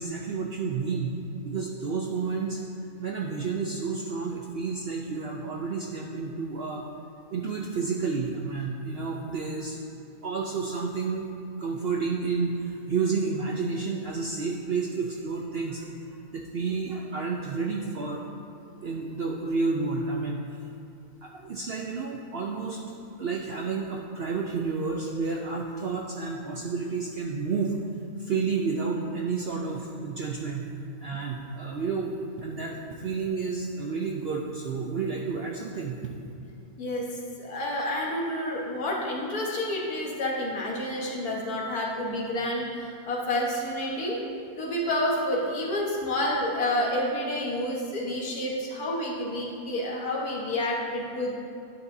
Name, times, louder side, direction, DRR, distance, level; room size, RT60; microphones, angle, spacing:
voice 1, 0.0-2.6 3.0-6.8 7.3-9.8 10.2-11.3 11.6-15.9 16.3-18.2 18.8-20.4 21.2-22.8 23.2-27.8 28.2-30.7 31.0-32.1 32.4-36.0, right 4 dB, 60° right, -1 dB, 0.6 m, -30 dB
voice 2, 36.8-44.2 44.6-51.3, left 1 dB, 75° left, -3 dB, 1.8 m, -29 dB
11.5 x 8.8 x 2.7 m, 2.7 s
omnidirectional pair, 1.6 m